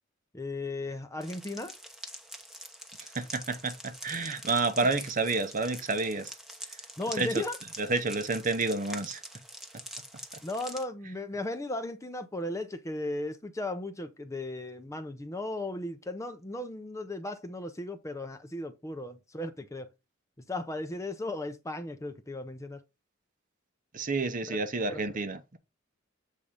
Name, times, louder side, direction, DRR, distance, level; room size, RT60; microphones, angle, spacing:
voice 1, 0.3-1.7 4.8-4.9 7.0-7.6 10.4-19.9 20.5-22.8 24.5-24.6 24.9-25.2, left 2 dB, 15° left, 0.7 m, -36 dB
sound 1, 1.2-10.8, equal, ahead, 1.0 m, -45 dB
voice 2, 3.0-6.3 7.1-7.4 7.8-9.2 11.1-11.2 23.9-25.6, right 3 dB, 40° right, 0.8 m, -30 dB
7.4 x 4.1 x 4.9 m
head